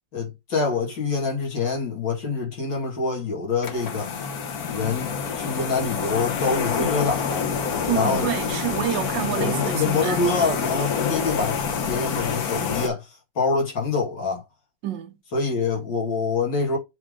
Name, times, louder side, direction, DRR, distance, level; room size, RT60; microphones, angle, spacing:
voice 1, 0.1-4.1 4.7-7.5 7.9-8.3 9.2-11.6 11.9-14.4 15.3-16.8, left 4 dB, 85° left, 3.0 m, -26 dB
sound 1, 3.6-12.9, left 6 dB, 60° left, 1.5 m, -27 dB
voice 2, 7.9-10.6 14.8-15.1, right 11 dB, 80° right, 1.5 m, -28 dB
7.6 x 3.6 x 3.8 m
omnidirectional pair, 2.0 m